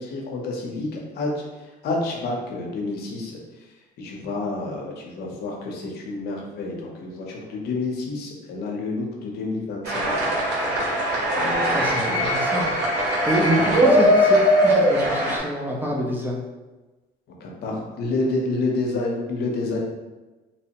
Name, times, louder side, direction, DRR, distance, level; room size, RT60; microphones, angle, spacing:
voice 1, 0.0-3.4 4.0-10.1 10.6-10.7 11.3-12.3 13.1-13.9 17.4-19.8, left 2 dB, 70° left, -1 dB, 0.7 m, -29 dB
sound 1, 9.9-15.4, equal, 85° right, 0.9 m, -20 dB
voice 2, 11.7-12.6 12.9-16.4, right 1 dB, 10° right, -3 dB, 0.5 m, -27 dB
2.8 x 2.1 x 2.8 m, 1.2 s
cardioid pair, 110°, 17 cm